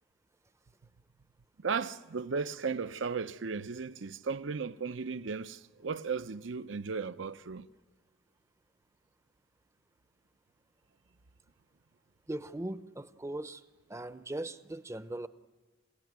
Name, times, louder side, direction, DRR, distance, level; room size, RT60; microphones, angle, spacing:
voice 1, 1.6-7.7, right 5 dB, 75° right, 0.7 m, -35 dB
voice 2, 12.3-13.6 13.9-15.3, right 1 dB, 15° right, 0.6 m, -39 dB
28.0 x 16.5 x 9.4 m
head